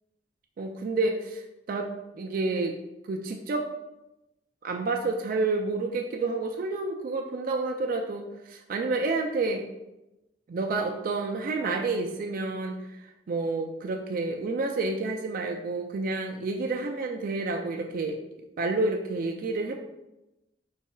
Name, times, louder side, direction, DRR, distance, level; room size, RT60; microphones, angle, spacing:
voice 1, 0.6-1.9 2.1-2.7 3.1-3.6 4.6-9.7 10.5-18.2 18.6-19.7, right 3 dB, 50° right, 2 dB, 0.3 m, -29 dB
4.6 x 4.2 x 2.2 m, 0.96 s
head